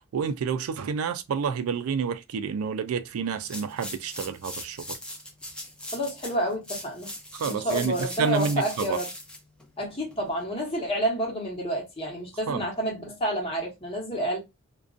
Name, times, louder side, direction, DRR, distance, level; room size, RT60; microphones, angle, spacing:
voice 1, 0.1-5.0 7.3-9.0 12.5-12.6, right 6 dB, 90° right, 0.3 m, -29 dB
sound 1, 3.4-10.4, left 1 dB, 5° left, 0.5 m, -40 dB
voice 2, 5.9-7.1 7.4-9.1 9.8-14.4, right 1 dB, 25° left, 1.0 m, -29 dB
2.5 x 2.2 x 2.4 m
head